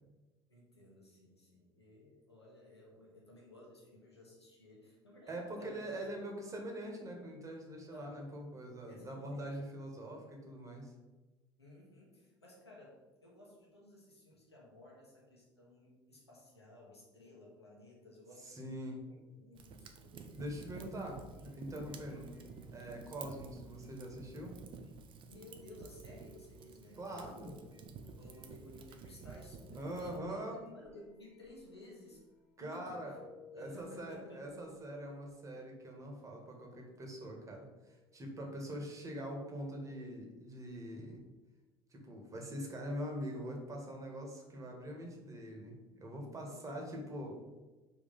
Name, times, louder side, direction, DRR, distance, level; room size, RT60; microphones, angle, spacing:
voice 1, 0.5-6.0 7.9-8.3 8.8-9.6 11.6-20.8 22.1-22.3 23.1-23.4 25.3-27.9 28.2-32.2 32.6-33.1 33.5-34.4 46.4-46.9, left 1 dB, 85° left, -3 dB, 1.6 m, -56 dB
voice 2, 5.3-10.9 18.4-19.0 20.3-22.4 22.7-24.6 27.0-27.5 29.7-30.6 32.6-33.2 33.5-41.2 41.9-47.4, equal, 25° right, 1 dB, 1.9 m, -43 dB
Fire, 19.5-30.2, right 5 dB, 40° right, 0.8 m, -52 dB
sound 1, 20.2-36.4 36.9-40.1, left 2 dB, 45° left, 2.0 m, -63 dB
5.7 x 4.7 x 5.4 m, 1.2 s
figure-of-eight pair, 65°, 13 cm